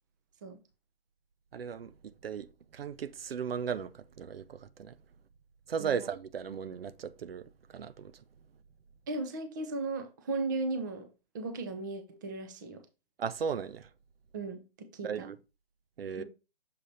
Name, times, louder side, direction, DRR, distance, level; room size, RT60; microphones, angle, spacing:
voice 1, 1.5-1.9 2.2-2.5 2.7-4.9 5.7-8.1 13.2-13.9 15.0-15.4 16.0-16.2, right 7 dB, 80° right, 0.6 m, -36 dB
voice 2, 9.1-11.1 11.3-12.8 14.3-15.3 16.2-16.3, right 3 dB, 20° right, 0.6 m, -36 dB
6.7 x 2.9 x 5.0 m
hypercardioid pair, 160°, 29 cm